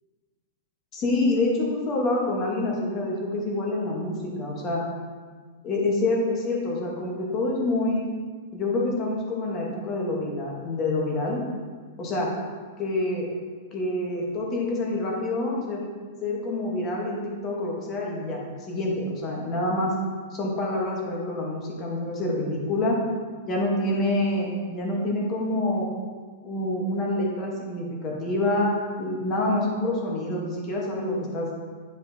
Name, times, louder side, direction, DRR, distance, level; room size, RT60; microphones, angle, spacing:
voice 1, 0.9-4.8 5.6-8.0 8.5-11.4 12.0-12.3 12.8-13.3 13.7-15.8 16.2-18.4 18.7-19.9 20.3-23.0 23.5-25.9 26.4-31.5, left 2 dB, 20° left, -2 dB, 1.0 m, -27 dB
10.0 x 4.9 x 2.6 m, 1.5 s
supercardioid pair, 175°, 0 cm